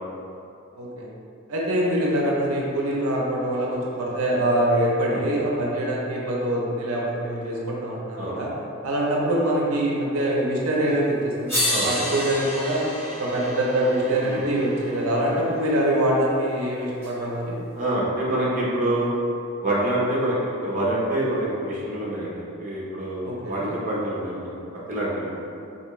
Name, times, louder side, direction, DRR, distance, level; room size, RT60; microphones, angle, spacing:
voice 1, 0.8-1.1 1.5-8.5 8.8-12.8 13.2-17.6 23.2-23.7, right 1 dB, 80° right, -3 dB, 0.6 m, -24 dB
sound 1, 10.9-11.0 11.5-15.7 17.0-17.1, left 1 dB, 10° left, 1.2 m, -30 dB
voice 2, 17.8-19.1 19.6-24.5 24.9-25.3, right 1 dB, 35° right, -6 dB, 0.6 m, -26 dB
3.4 x 2.6 x 3.0 m, 2.6 s
head